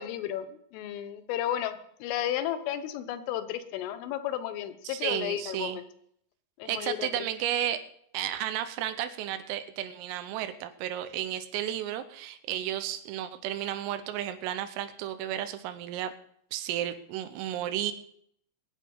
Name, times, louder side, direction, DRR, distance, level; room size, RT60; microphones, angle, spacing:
voice 1, 0.0-5.9 6.6-7.1, left 11 dB, 80° left, 11 dB, 3.5 m, -33 dB
voice 2, 4.9-5.8 6.7-7.9 8.1-16.1 16.5-17.9, right 11 dB, 85° right, 10 dB, 3.5 m, -33 dB
22.0 x 8.7 x 5.5 m, 0.68 s
omnidirectional pair, 5.9 m